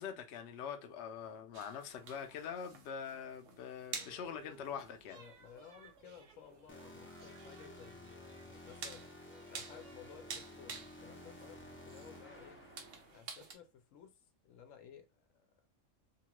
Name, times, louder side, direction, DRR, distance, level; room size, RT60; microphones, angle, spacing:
voice 1, 0.0-5.2, left 7 dB, 65° left, 0.8 m, -44 dB
sound 1, 1.5-13.5, right 5 dB, 80° right, 1.0 m, -51 dB
sound 2, 3.9-4.7 5.0-8.9 9.3-11.6, right 5 dB, 55° right, 0.5 m, -62 dB
voice 2, 5.1-9.1 9.5-12.6 13.1-14.2 14.4-15.6, left 8 dB, 90° left, 1.0 m, -56 dB
sound 3, 6.7-13.2, left 1 dB, 20° left, 0.3 m, -53 dB
2.9 x 2.3 x 2.9 m
omnidirectional pair, 1.3 m